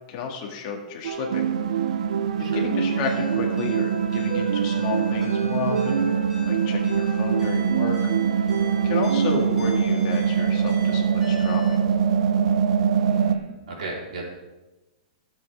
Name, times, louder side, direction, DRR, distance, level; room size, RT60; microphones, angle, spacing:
voice 1, 0.1-1.5 1.7-1.8 2.4-6.1 6.4-8.5 8.8-11.8, left 5 dB, 25° left, 0 dB, 1.8 m, -31 dB
sound 1, 1.0-9.8, right 7 dB, 90° right, 0.7 m, -29 dB
sound 2, 1.3-13.4, right 7 dB, 50° right, 0.6 m, -24 dB
sound 3, 3.0-11.8, right 1 dB, 5° right, 2.3 m, -40 dB
voice 2, 12.9-14.2, right 3 dB, 70° right, -3 dB, 4.1 m, -36 dB
16.5 x 7.7 x 3.5 m, 1.1 s
hypercardioid pair, 180°, 4 cm